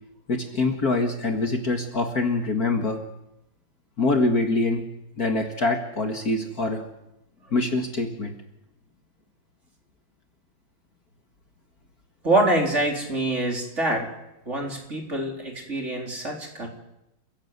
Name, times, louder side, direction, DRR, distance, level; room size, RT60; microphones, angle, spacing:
voice 1, 0.3-3.0 4.0-4.8 5.2-6.8 7.5-8.3, left 2 dB, 45° left, 4 dB, 2.3 m, -24 dB
voice 2, 12.2-14.1 14.5-16.7, right 2 dB, 30° right, 1 dB, 4.2 m, -25 dB
29.5 x 16.5 x 8.2 m, 0.89 s
omnidirectional pair, 2.3 m